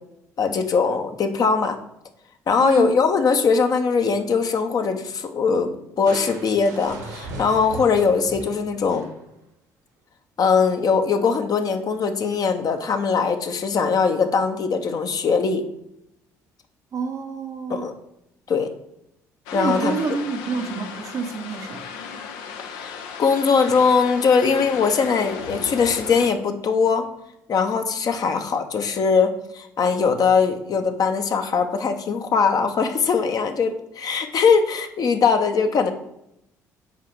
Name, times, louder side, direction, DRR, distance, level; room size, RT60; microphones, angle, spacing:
voice 1, 0.4-1.8 2.5-9.1 10.4-15.6 17.7-17.9 18.5-18.7 19.5-20.0 22.6-27.1 27.5-35.9, left 5 dB, 50° left, 6 dB, 1.0 m, -21 dB
voice 2, 2.6-2.9 16.9-17.9 19.5-21.9, right 5 dB, 45° right, 4 dB, 0.7 m, -28 dB
Crushing, 6.1-9.4, right 2 dB, 80° right, 1.3 m, -38 dB
sound 1, 19.5-26.3, left 6 dB, 70° left, 0.7 m, -36 dB
5.6 x 4.7 x 6.5 m, 0.82 s
figure-of-eight pair, 50°, 9 cm